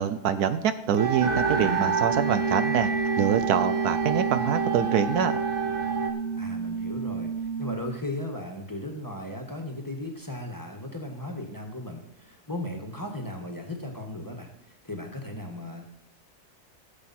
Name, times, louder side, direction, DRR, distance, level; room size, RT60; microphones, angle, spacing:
voice 1, 0.0-2.9 3.2-5.4, right 8 dB, 75° right, 11 dB, 1.1 m, -25 dB
sound 1, 1.0-6.1, right 4 dB, 50° right, 1.6 m, -29 dB
sound 2, 1.2-7.8, right 5 dB, 35° right, 0.9 m, -30 dB
voice 2, 6.4-7.3 7.6-15.9, left 1 dB, 15° left, 2 dB, 1.4 m, -36 dB
16.0 x 7.9 x 4.3 m, 0.78 s
omnidirectional pair, 1.7 m